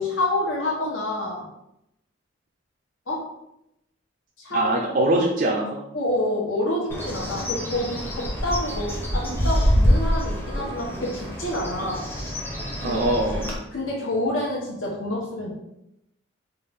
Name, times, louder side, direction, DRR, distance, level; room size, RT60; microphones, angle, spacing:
voice 1, 0.0-1.4 3.1-3.2 4.4-4.7 5.9-12.0 12.8-13.1 13.7-15.5, left 1 dB, 80° left, -3 dB, 0.9 m, -27 dB
voice 2, 4.5-5.8 11.8-12.0 12.8-13.5, right 1 dB, 45° right, 0 dB, 0.4 m, -23 dB
Bird, 6.9-13.5, equal, 10° left, 0.6 m, -25 dB
3.2 x 2.4 x 3.4 m, 0.83 s
head